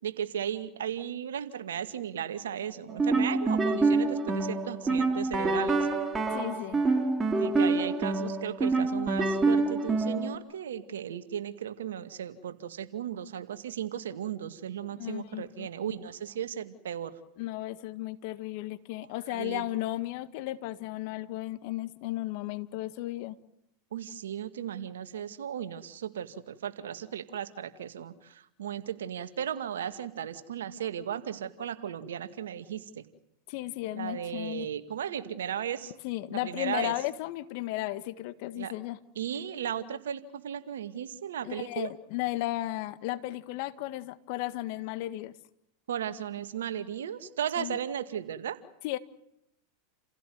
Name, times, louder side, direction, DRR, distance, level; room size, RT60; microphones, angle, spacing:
voice 1, 0.0-5.9 7.4-17.2 19.3-19.7 23.9-33.0 33.9-35.9 36.3-36.9 38.6-38.7 39.2-41.9 45.9-48.6, right 9 dB, 80° right, 10 dB, 2.1 m, -36 dB
sound 1, 2.9-10.4, right 3 dB, 20° right, 3.6 m, -26 dB
voice 2, 6.3-6.8 15.0-16.0 17.4-23.4 33.5-34.7 36.0-39.0 41.4-45.3 47.6-47.8 48.8-49.0, left 16 dB, 60° left, 13 dB, 1.7 m, -35 dB
30.0 x 16.0 x 9.5 m, 0.80 s
hypercardioid pair, 95°, 0 cm